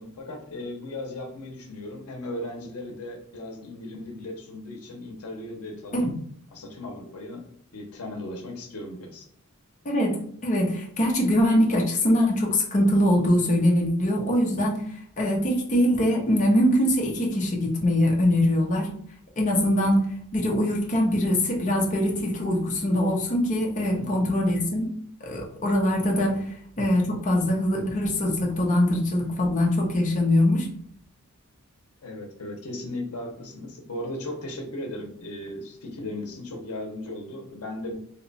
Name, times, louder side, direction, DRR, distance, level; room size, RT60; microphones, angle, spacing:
voice 1, 0.0-6.0 6.5-7.5 7.7-9.2 24.0-24.3 26.2-26.4 32.0-38.0, left 1 dB, 85° left, 2 dB, 0.7 m, -37 dB
voice 2, 9.8-10.2 10.4-14.8 15.2-19.0 19.4-20.1 20.3-24.9 25.2-26.4 26.8-30.7, left 1 dB, 35° left, -2 dB, 0.7 m, -22 dB
2.9 x 2.2 x 3.9 m, 0.64 s
head